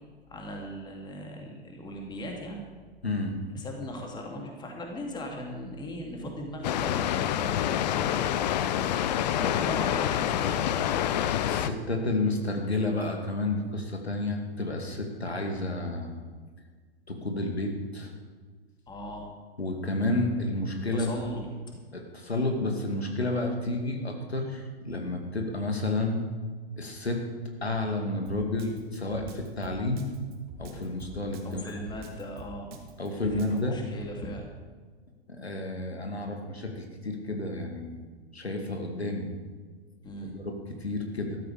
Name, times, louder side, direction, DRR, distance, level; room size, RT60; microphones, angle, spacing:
voice 1, 0.3-2.6 3.5-7.6 9.2-10.7 18.9-19.3 20.9-21.8 31.4-32.8 33.2-34.5 40.0-40.3, equal, 15° left, 1 dB, 2.4 m, -39 dB
voice 2, 3.0-3.3 11.4-16.2 17.1-18.1 19.6-21.1 21.9-26.3 26.8-27.2 27.6-30.0 30.6-31.8 33.0-33.8 35.3-38.0 38.3-39.3 40.2-40.5 40.8-41.4, left 2 dB, 85° left, 3 dB, 2.3 m, -30 dB
Water, 6.6-11.7, left 10 dB, 45° left, 0.7 m, -27 dB
Drum kit, 28.3-33.6, right 2 dB, 30° right, 2.2 m, -45 dB
14.0 x 13.0 x 5.0 m, 1.5 s
figure-of-eight pair, 110°, 31 cm